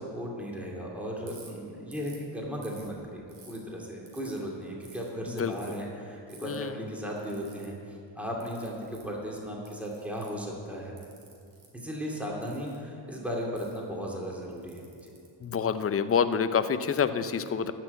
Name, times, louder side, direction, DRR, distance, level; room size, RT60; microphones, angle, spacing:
voice 1, 0.0-10.9 11.7-15.1, equal, 5° right, -3 dB, 2.3 m, -36 dB
Ratchet pawl, 1.3-1.5 1.9-2.2 2.6-3.6 4.1-4.4 4.8-5.1 5.5-5.8 6.3-6.6 7.2-7.7 8.4-9.1 9.7-10.4 11.0-11.7 12.4-12.8 13.6-13.8 14.5-16.0, right 4 dB, 80° right, 2.7 m, -53 dB
voice 2, 6.4-6.8 15.4-17.7, left 6 dB, 30° left, 11 dB, 0.6 m, -27 dB
12.0 x 6.1 x 8.2 m, 2.5 s
cardioid pair, 75°, 45 cm